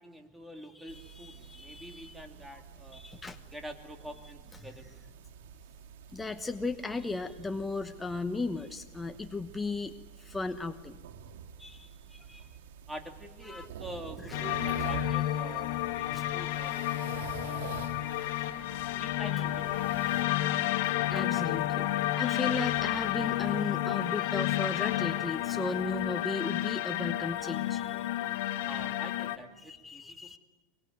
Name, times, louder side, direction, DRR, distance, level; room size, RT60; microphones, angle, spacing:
voice 1, 0.0-3.0 3.5-4.9 12.9-18.1 19.0-19.8 28.6-30.4, right 1 dB, 5° right, 4 dB, 2.9 m, -46 dB
voice 2, 0.7-2.2 2.5-2.6 2.9-3.4 4.6-4.7 6.1-11.0 11.6-12.5 13.4-13.7 14.2-15.1 16.1-16.3 19.3-19.4 20.8-21.9 22.2-28.3 29.6-30.4, left 3 dB, 10° left, 8 dB, 1.1 m, -36 dB
sound 1, 0.9-20.2, right 8 dB, 80° right, 2.7 m, -47 dB
sound 2, 14.3-29.4, left 14 dB, 70° left, 1.4 m, -31 dB
24.0 x 23.0 x 9.6 m, 1.2 s
supercardioid pair, 130°, 0 cm